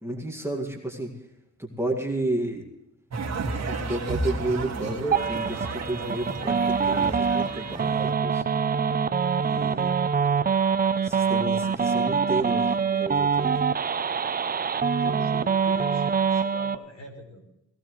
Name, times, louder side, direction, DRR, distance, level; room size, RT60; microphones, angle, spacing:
voice 1, 0.0-1.1 1.6-2.6 3.7-8.4 9.4-9.9 10.9-13.5, right 2 dB, 10° right, 0 dB, 2.1 m, -31 dB
sound 1, 3.1-8.1, right 3 dB, 60° right, 2.0 m, -33 dB
sound 2, 5.1-16.8, right 6 dB, 30° right, 0.5 m, -24 dB
Bowed string instrument, 5.4-10.2, left 2 dB, 80° left, 3.9 m, -49 dB
voice 2, 15.0-17.4, left 1 dB, 65° left, 4 dB, 4.3 m, -43 dB
18.0 x 16.5 x 3.1 m, 0.87 s
wide cardioid pair, 145°, 30 cm